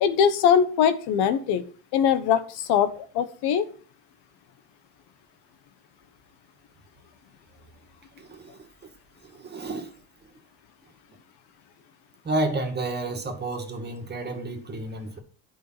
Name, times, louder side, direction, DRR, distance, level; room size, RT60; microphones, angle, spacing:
voice 1, 0.0-1.6 1.9-3.6, left 8 dB, 85° left, 11 dB, 1.3 m, -22 dB
voice 2, 8.2-8.7 9.2-9.9 12.2-15.2, right 2 dB, 25° right, 4 dB, 2.0 m, -31 dB
10.5 x 5.6 x 5.8 m, 0.40 s
cardioid pair, 130°, 39 cm